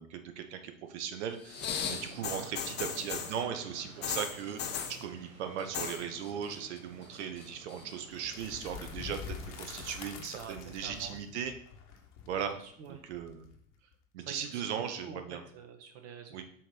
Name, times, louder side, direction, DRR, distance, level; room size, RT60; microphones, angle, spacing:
voice 1, 0.0-11.5 12.3-12.6 12.9-13.5 14.1-15.4 16.3-16.4, right 8 dB, 55° right, 8 dB, 1.1 m, -38 dB
sound 1, 1.4-3.4 4.0-5.0 5.6-6.0 6.3-6.8 7.1-7.9 8.7-8.8, left 7 dB, 25° left, 0.9 m, -37 dB
sound 2, 1.6-10.3, right 4 dB, 80° right, 1.1 m, -53 dB
sound 3, 8.1-13.9, left 7 dB, 45° left, 1.3 m, -46 dB
voice 2, 10.2-11.2 12.5-13.0 14.2-16.4, right 6 dB, 35° right, 6 dB, 1.2 m, -48 dB
7.4 x 3.3 x 5.4 m, 0.64 s
figure-of-eight pair, 90°, 41 cm